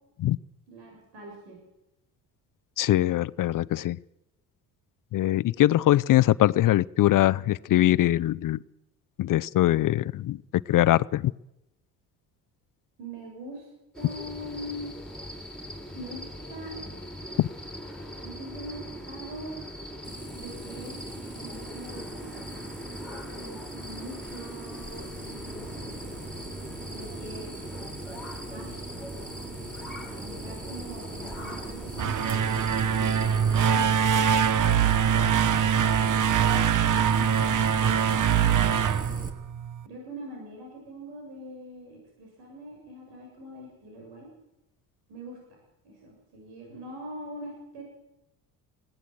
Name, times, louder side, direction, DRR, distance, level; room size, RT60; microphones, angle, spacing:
voice 1, 0.7-1.6 13.0-13.7 14.0-14.9 15.9-16.2 16.5-17.0 18.2-19.5 20.3-21.1 21.3-22.3 23.4-26.2 26.9-27.7 28.5-28.8 30.1-32.4 39.8-44.3 45.1-45.6 45.8-47.8, equal, 80° right, 0 dB, 7.0 m, -43 dB
voice 2, 2.8-4.0 5.1-8.6 9.2-10.4 10.7-11.3 17.4-17.5, left 14 dB, 50° left, 18 dB, 0.6 m, -22 dB
sound 1, 13.9-33.8, equal, ahead, 5.0 m, -41 dB
sound 2, 20.0-39.3, right 3 dB, 20° right, 3.3 m, -40 dB
sound 3, 31.9-39.8, right 8 dB, 50° right, 1.2 m, -23 dB
20.5 x 16.5 x 7.8 m, 0.89 s
supercardioid pair, 70°, 41 cm